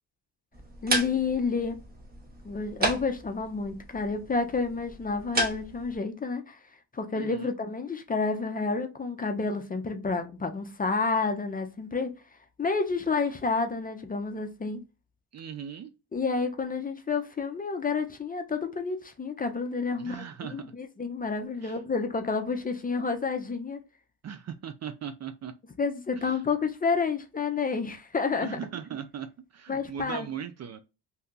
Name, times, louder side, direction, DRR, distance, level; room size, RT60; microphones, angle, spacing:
sound 1, 0.5-6.0, right 1 dB, 25° right, 0.9 m, -33 dB
voice 1, 0.8-1.8 2.4-6.6 6.9-12.2 12.6-14.8 16.1-20.3 20.5-23.8 25.8-28.6 29.7-30.3, left 4 dB, 20° left, 0.5 m, -30 dB
voice 2, 7.1-7.6 15.3-15.9 20.0-20.7 21.6-21.8 24.2-25.5 26.2-26.4 28.4-30.8, right 8 dB, 40° right, 0.4 m, -39 dB
2.8 x 2.2 x 3.7 m
cardioid pair, 95°, 40 cm